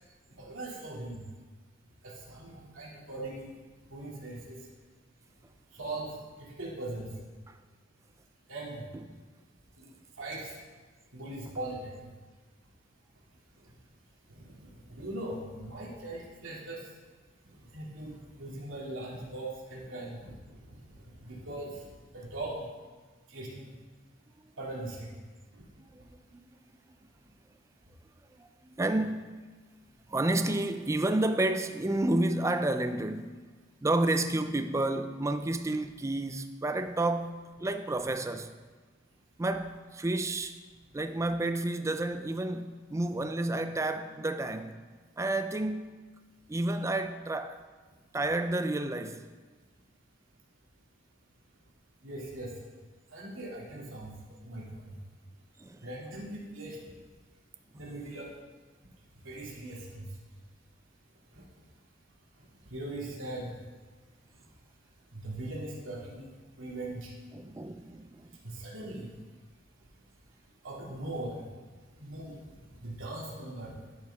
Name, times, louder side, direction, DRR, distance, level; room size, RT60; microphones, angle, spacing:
voice 1, 0.4-1.2 2.0-3.5 3.9-4.6 5.7-7.1 8.5-8.8 9.8-9.9 10.2-10.5 11.1-12.0 14.3-16.8 17.7-20.3 20.7-20.8 21.2-21.8 22.1-22.6 23.3-23.7 24.6-25.1 52.0-52.5 53.1-54.1 54.4-55.0 55.8-56.8 57.8-58.3 59.2-60.0 61.3-61.4 62.6-63.6 65.1-66.2 66.6-67.1 68.4-69.1 70.6-71.4 72.0-72.4 72.8-73.7, right 2 dB, 85° right, 2.5 m, -40 dB
voice 2, 25.8-26.5 28.4-29.3 30.1-33.4 33.8-38.5 39.4-40.6 40.9-44.8 45.2-46.0 46.5-47.6 48.1-49.3 55.6-55.9 57.7-57.8 67.3-68.4, right 2 dB, 15° right, 0.4 m, -31 dB
11.5 x 7.7 x 3.5 m
head